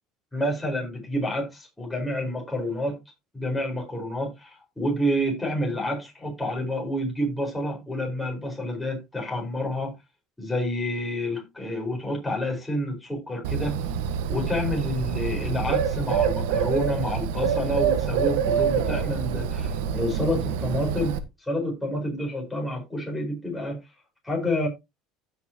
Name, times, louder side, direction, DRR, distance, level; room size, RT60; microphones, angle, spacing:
voice 1, 0.3-3.0 3.3-9.9 10.4-13.7 14.3-21.1 21.5-23.8 24.2-24.7, left 1 dB, 5° left, 4.6 m, -28 dB
Bird, 13.4-21.2, right 7 dB, 85° right, 1.4 m, -26 dB
15.0 x 6.0 x 2.8 m
cardioid pair, 130°, 0 cm